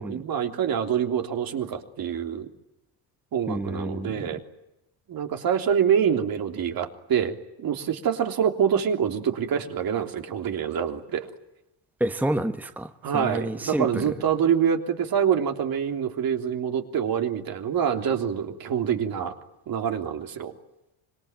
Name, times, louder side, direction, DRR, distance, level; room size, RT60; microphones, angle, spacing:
voice 1, 0.0-2.5 3.3-4.4 5.1-11.3 13.0-19.4 19.7-20.5, right 8 dB, 55° right, 5 dB, 3.4 m, -26 dB
voice 2, 3.5-4.1 12.0-14.0, right 1 dB, 5° right, 8 dB, 1.2 m, -29 dB
26.0 x 23.0 x 9.1 m, 0.90 s
cardioid pair, 120°, 42 cm